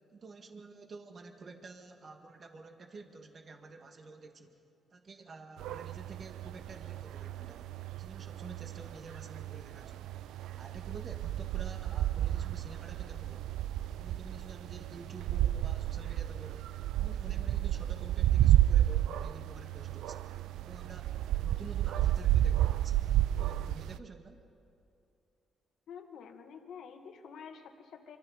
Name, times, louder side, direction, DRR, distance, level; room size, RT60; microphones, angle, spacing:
voice 1, 0.1-4.6 4.9-7.7 8.0-10.1 10.5-13.5 14.0-16.7 17.0-20.3 20.6-23.0 23.4-24.4, right 3 dB, 45° right, 4 dB, 1.8 m, -49 dB
sound 1, 5.6-24.0, right 13 dB, 85° right, 0.4 m, -31 dB
voice 2, 25.9-28.2, left 7 dB, 75° left, 4 dB, 1.8 m, -48 dB
26.0 x 25.0 x 4.2 m, 2.6 s
cardioid pair, 90°, 0 cm